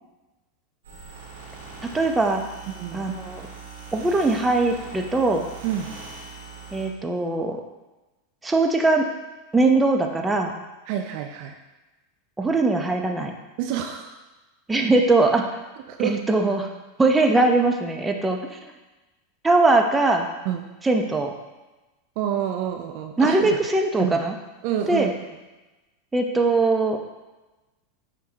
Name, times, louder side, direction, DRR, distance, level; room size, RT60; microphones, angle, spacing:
sound 1, 0.8-6.9, right 4 dB, 80° right, 1.9 m, -41 dB
voice 1, 1.8-2.4 2.9-3.5 3.9-5.5 6.7-7.6 8.4-9.0 9.5-10.5 12.4-13.3 14.7-15.4 16.0-16.7 17.0-18.4 19.4-20.3 20.8-21.3 23.2-24.3 24.9-25.1 26.1-27.0, right 2 dB, 15° right, 3 dB, 0.8 m, -21 dB
voice 2, 2.7-3.1 5.6-5.9 10.9-11.5 13.6-14.2 15.9-16.2 20.5-20.7 22.2-23.5 24.0-24.2 24.6-25.1, right 10 dB, 55° right, 5 dB, 0.5 m, -28 dB
9.8 x 3.7 x 2.9 m, 1.1 s
hypercardioid pair, 90°, 0 cm